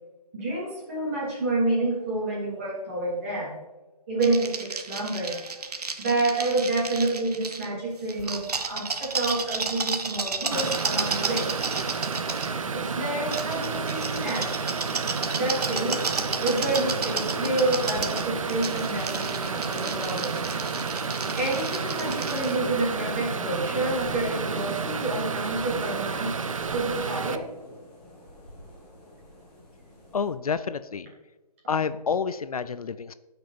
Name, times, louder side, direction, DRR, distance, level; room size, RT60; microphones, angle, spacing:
voice 1, 0.3-3.5 4.1-5.4 6.0-11.5 12.7-14.4 15.3-16.0 16.4-20.4 21.3-26.3 26.7-27.4, right 2 dB, 20° right, -5 dB, 3.2 m, -28 dB
sound 1, 4.2-7.7 8.1-12.5 13.3-22.5, right 4 dB, 70° right, 1.5 m, -32 dB
sound 2, 10.5-27.4, right 5 dB, 55° right, 0.8 m, -31 dB
sound 3, 15.1-30.3, equal, 5° left, 1.5 m, -44 dB
voice 2, 30.1-31.1 31.7-33.1, left 6 dB, 65° left, 14 dB, 0.5 m, -28 dB
15.0 x 6.0 x 5.1 m, 1.1 s
hypercardioid pair, 180°, 20 cm